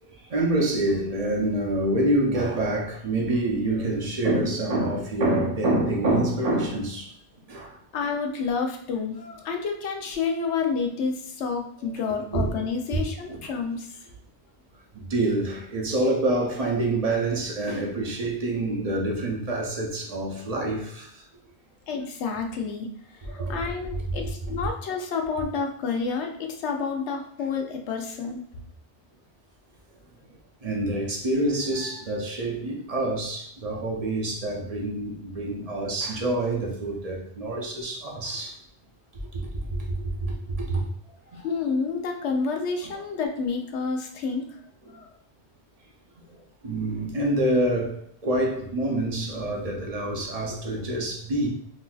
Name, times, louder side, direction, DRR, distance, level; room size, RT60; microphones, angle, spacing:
voice 1, 0.0-7.1 7.5-7.8 12.3-12.5 12.9-13.0 13.3-13.5 14.9-21.2 23.2-23.6 24.1-24.3 24.6-24.7 30.6-38.6 39.3-39.8 40.2-40.8 41.3-41.4 42.9-43.0 44.8-44.9 46.6-51.5, right 1 dB, 45° right, 0.6 m, -27 dB
voice 2, 7.9-13.9 21.9-22.9 23.3-28.4 41.4-44.6 44.9-45.1, left 5 dB, 85° left, 0.9 m, -29 dB
3.9 x 2.6 x 2.3 m
omnidirectional pair, 1.1 m